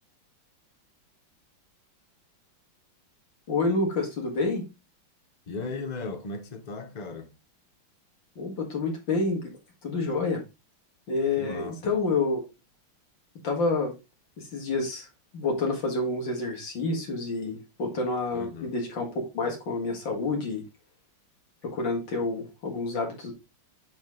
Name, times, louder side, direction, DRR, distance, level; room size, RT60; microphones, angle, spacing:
voice 1, 3.5-4.6 8.4-9.5 9.8-10.4 11.1-12.4 13.4-13.9 14.4-15.1 15.3-20.6 21.6-23.3, left 3 dB, 60° left, 2.5 m, -28 dB
voice 2, 5.5-7.4 11.4-11.9 18.3-18.7, left 3 dB, 85° left, 0.3 m, -37 dB
7.1 x 4.3 x 3.8 m
omnidirectional pair, 2.3 m